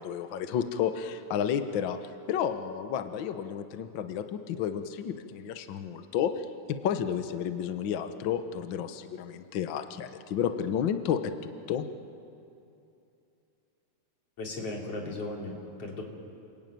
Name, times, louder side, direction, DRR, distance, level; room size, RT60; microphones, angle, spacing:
voice 1, 0.0-2.0 2.3-11.3 11.7-11.8, left 8 dB, 80° left, 9 dB, 1.0 m, -31 dB
voice 2, 14.4-16.0, left 2 dB, 50° left, -1 dB, 4.4 m, -36 dB
29.0 x 21.0 x 9.3 m, 2.7 s
omnidirectional pair, 3.6 m